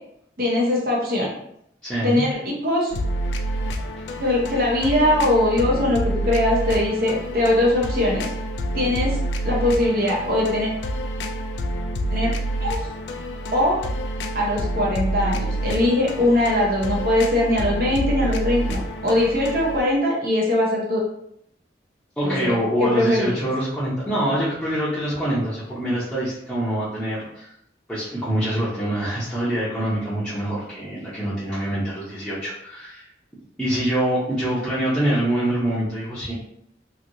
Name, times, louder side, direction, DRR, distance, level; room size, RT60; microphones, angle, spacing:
voice 1, 0.4-1.3 2.0-2.9 4.2-8.3 8.7-9.2 9.4-10.7 12.1-12.3 12.6-12.8 13.5-13.8 14.3-21.0 22.2-22.5 22.8-23.5, left 1 dB, 55° right, -3 dB, 0.8 m, -21 dB
voice 2, 1.8-2.2 22.2-27.5 27.9-33.1 33.6-36.3, right 1 dB, 5° left, -12 dB, 0.7 m, -25 dB
sound 1, 2.9-19.8, right 1 dB, 85° left, 0.4 m, -28 dB
3.1 x 2.8 x 2.6 m, 0.74 s
head